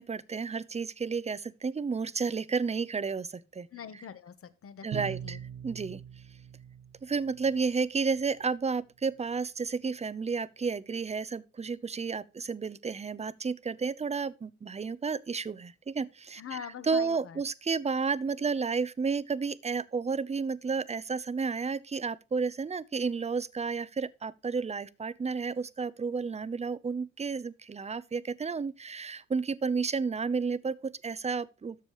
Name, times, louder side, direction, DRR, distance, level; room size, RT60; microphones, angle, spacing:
voice 1, 0.0-3.7 4.8-6.0 7.0-16.6 16.9-31.8, right 5 dB, 20° right, 0.7 m, -32 dB
voice 2, 3.7-5.4 16.4-17.4, left 8 dB, 50° left, 1.3 m, -43 dB
Bowed string instrument, 4.9-7.7, right 9 dB, 55° right, 0.7 m, -42 dB
13.0 x 6.9 x 3.1 m
cardioid pair, 90°, 30 cm